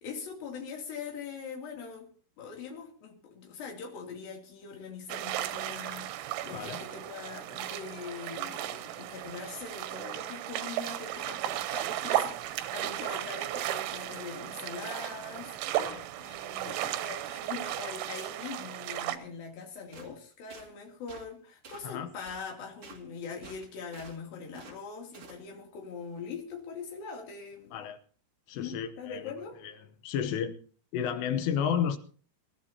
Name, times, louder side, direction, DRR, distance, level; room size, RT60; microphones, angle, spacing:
voice 1, 0.0-2.1 2.4-27.7 28.5-29.6, left 5 dB, 55° left, 4.4 m, -42 dB
sound 1, 5.1-19.2, right 13 dB, 90° right, 3.3 m, -35 dB
voice 2, 6.5-6.8 15.7-16.1 16.6-17.0 21.8-22.1 27.7-28.0 28.5-29.3 29.6-29.8 30.0-30.6 30.9-32.0, left 8 dB, 75° left, 2.9 m, -32 dB
sound 2, 19.9-20.1 20.5-20.7 21.1-21.3 21.6-21.9 22.3-22.4 22.8-23.0 23.4-24.2 24.5-24.8 25.1-25.4, right 5 dB, 40° right, 2.3 m, -50 dB
26.0 x 12.5 x 2.8 m
omnidirectional pair, 5.3 m